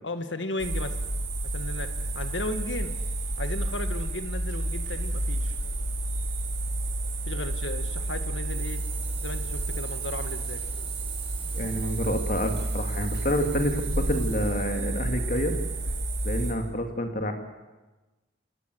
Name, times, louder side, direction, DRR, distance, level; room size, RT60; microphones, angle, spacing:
voice 1, 0.0-1.0 1.5-3.0 3.4-5.6 7.3-8.8 9.2-10.6, left 2 dB, 75° left, 8 dB, 1.7 m, -35 dB
sound 1, 0.6-16.5, right 2 dB, 80° right, 5.6 m, -30 dB
sound 2, 8.4-14.8, right 7 dB, 30° right, 7.5 m, -46 dB
voice 2, 11.5-15.5 16.2-17.3, equal, 45° left, 5 dB, 2.6 m, -28 dB
26.5 x 19.0 x 8.1 m, 1.1 s
head